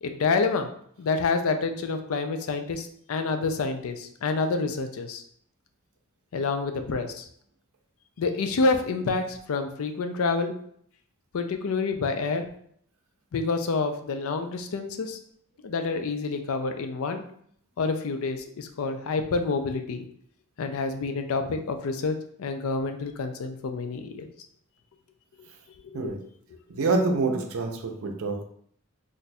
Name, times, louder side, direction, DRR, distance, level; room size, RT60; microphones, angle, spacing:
voice 1, 0.0-0.7 1.0-5.2 6.3-7.2 8.2-10.5 11.3-12.4 13.3-15.2 15.6-17.2 17.8-20.1 20.6-24.3 25.8-26.1, left 4 dB, 70° left, 6 dB, 0.4 m, -28 dB
voice 2, 26.7-28.4, right 3 dB, 70° right, 4 dB, 0.5 m, -26 dB
2.5 x 2.2 x 4.0 m, 0.64 s
head